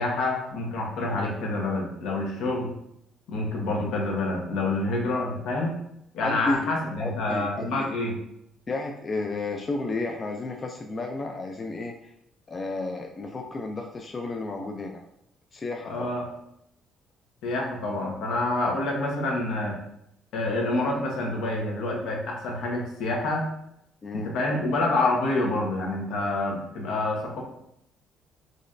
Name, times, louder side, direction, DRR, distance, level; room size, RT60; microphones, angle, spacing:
voice 1, 0.0-2.7 3.3-5.8 6.1-8.2 15.9-16.2 17.4-19.8 20.3-23.5 24.1-27.4, left 2 dB, 75° left, -1 dB, 1.0 m, -27 dB
voice 2, 6.2-7.9 8.7-12.1 12.5-15.0 15.5-16.1 24.0-24.3, left 3 dB, 30° left, 2 dB, 0.4 m, -32 dB
3.9 x 3.1 x 2.5 m, 0.77 s
cardioid pair, 130°, 0 cm